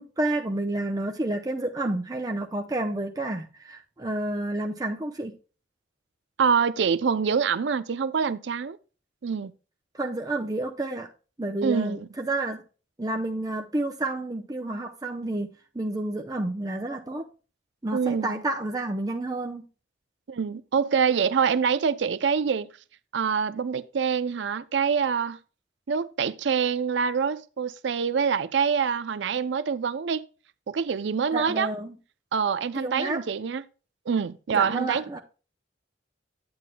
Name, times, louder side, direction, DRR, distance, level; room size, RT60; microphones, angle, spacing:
voice 1, 0.0-5.3 9.9-11.1 11.4-12.6 13.0-17.3 17.8-19.7 31.3-32.0 32.7-33.2 34.5-35.2, right 2 dB, 20° right, 0.6 m, -30 dB
voice 2, 6.4-8.8 9.2-9.5 11.6-12.1 17.9-18.3 20.3-22.7 23.1-25.4 25.9-30.2 30.7-31.7 32.3-33.6 34.1-35.2, right 6 dB, 70° right, 0.5 m, -25 dB
9.5 x 9.1 x 2.2 m
head